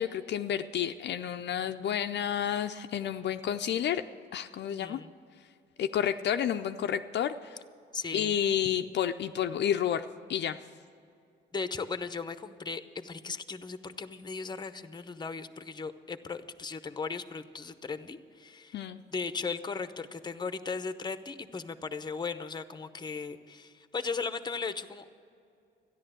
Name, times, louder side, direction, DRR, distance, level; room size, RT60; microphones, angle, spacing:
voice 1, 0.0-4.0 4.3-5.0 5.8-7.6 8.1-10.6 18.7-19.0, left 9 dB, 60° left, 7 dB, 0.5 m, -30 dB
voice 2, 4.7-5.1 7.9-8.4 11.5-18.8 19.1-25.2, left 4 dB, 20° left, 11 dB, 0.8 m, -37 dB
13.0 x 10.5 x 7.7 m, 2.4 s
cardioid pair, 90°, 20 cm